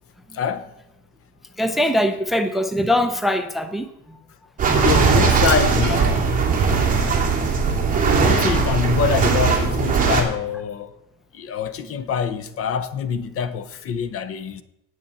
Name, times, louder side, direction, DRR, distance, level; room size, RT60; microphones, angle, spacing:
voice 1, 0.3-0.7 4.7-6.2 8.1-10.9 11.3-14.6, left 7 dB, 50° left, 0.8 m, -25 dB
voice 2, 1.6-3.9, left 1 dB, ahead, 0.6 m, -21 dB
sound 1, 4.6-10.2, right 5 dB, 25° right, 2.4 m, -19 dB
18.0 x 6.7 x 4.2 m
cardioid pair, 160°, 29 cm